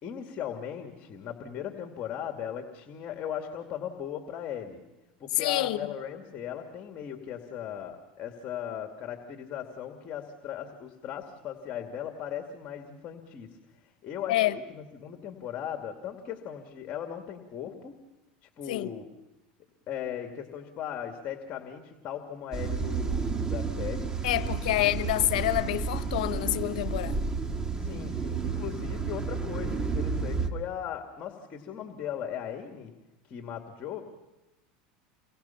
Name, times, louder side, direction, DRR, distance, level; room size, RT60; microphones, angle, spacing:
voice 1, 0.0-4.8 5.2-13.6 14.0-18.0 18.4-19.1 19.9-25.2 27.8-32.9 33.3-34.0, left 9 dB, 40° left, 2.3 m, -38 dB
voice 2, 5.4-5.8 14.3-14.6 18.7-18.9 24.2-27.2, left 15 dB, 80° left, 1.1 m, -27 dB
sound 1, 22.5-30.5, right 4 dB, 15° right, 1.8 m, -31 dB
29.0 x 23.5 x 5.8 m
supercardioid pair, 120°, 4 cm